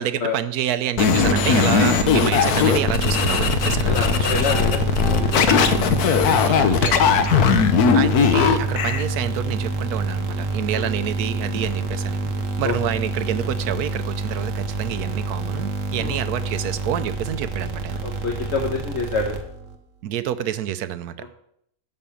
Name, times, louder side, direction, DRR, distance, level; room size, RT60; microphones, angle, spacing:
voice 1, 0.0-4.4 5.4-7.3 7.9-12.2 12.6-18.0 20.0-21.1, right 11 dB, 90° right, 12 dB, 1.2 m, -28 dB
sound 1, 1.0-9.0, left 6 dB, 90° left, 1.4 m, -19 dB
sound 2, 1.0-19.8, right 3 dB, 60° right, 1.5 m, -27 dB
voice 2, 3.8-4.8 5.1-5.5 6.2-6.4 10.7-10.9 12.6-12.7 16.0-16.2 18.0-19.4 21.2-21.3, left 3 dB, 50° left, 1 dB, 1.4 m, -27 dB
Piano, 4.5-6.9, equal, 35° right, 2.8 m, -38 dB
11.0 x 5.3 x 7.1 m, 0.72 s
omnidirectional pair, 1.6 m